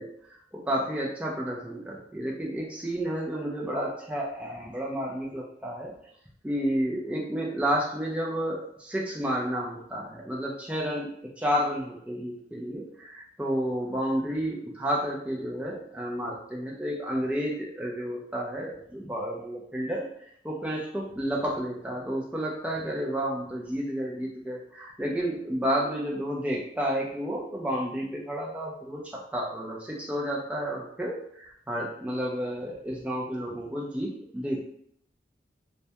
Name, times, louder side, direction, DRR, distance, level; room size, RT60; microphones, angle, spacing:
voice 1, 0.0-5.9 6.4-20.1 20.4-34.6, equal, 5° right, -3 dB, 0.4 m, -31 dB
2.2 x 2.1 x 2.8 m, 0.69 s
head